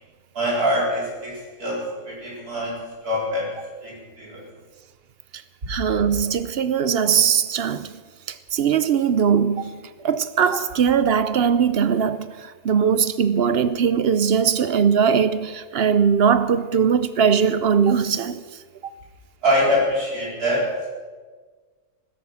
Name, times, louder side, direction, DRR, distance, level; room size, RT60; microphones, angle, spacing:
voice 1, 0.3-2.8 3.0-3.5 3.8-4.4 19.4-20.6, equal, 80° right, 4.9 m, -24 dB
voice 2, 5.7-8.0 8.3-18.4 18.8-18.9, right 7 dB, 60° right, 0.7 m, -20 dB
15.5 x 13.0 x 6.2 m
omnidirectional pair, 1.6 m